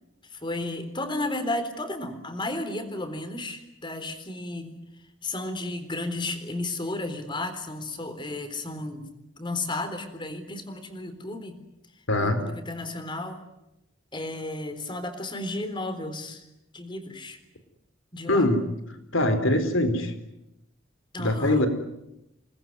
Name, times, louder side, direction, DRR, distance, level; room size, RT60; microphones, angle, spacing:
voice 1, 0.2-4.8 5.2-9.1 9.4-11.6 12.2-13.4 14.1-16.5 16.7-17.4 18.1-18.5 21.1-21.7, left 2 dB, 25° left, 8 dB, 3.9 m, -33 dB
voice 2, 12.1-12.4 18.3-18.6 19.1-20.1 21.2-21.7, left 1 dB, 90° left, 9 dB, 4.2 m, -22 dB
28.5 x 20.5 x 9.6 m, 0.88 s
head